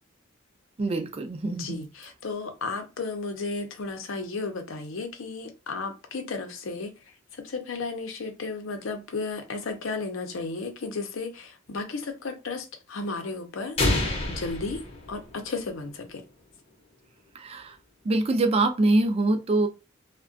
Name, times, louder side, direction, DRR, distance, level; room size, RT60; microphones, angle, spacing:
voice 1, 0.8-1.8 17.3-17.7 18.0-19.7, right 2 dB, 30° right, 0.4 m, -24 dB
voice 2, 1.5-6.9 7.3-14.8 15.1-16.2, left 3 dB, 80° left, 0.6 m, -34 dB
sound 1, 13.8-15.7, left 2 dB, 30° left, 0.7 m, -28 dB
2.3 x 2.2 x 2.5 m
head